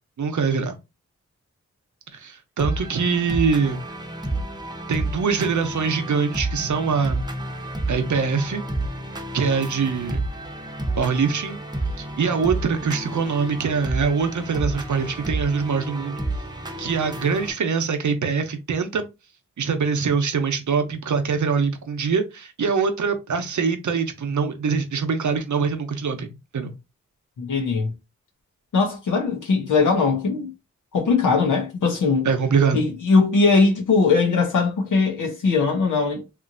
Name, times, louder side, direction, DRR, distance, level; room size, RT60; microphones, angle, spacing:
voice 1, 0.2-0.8 2.1-3.8 4.9-7.2 7.9-8.6 9.3-10.2 11.0-11.6 12.0-16.2 16.8-19.1 19.6-26.3 26.5-26.7 32.2-32.8, right 5 dB, 70° right, 0.8 m, -23 dB
sound 1, 2.6-17.5, right 1 dB, 15° right, 0.8 m, -30 dB
voice 2, 27.4-28.0 28.7-30.5 30.9-32.3 32.7-36.2, left 4 dB, 80° left, 0.8 m, -20 dB
2.9 x 2.5 x 2.5 m
cardioid pair, 45°, 30 cm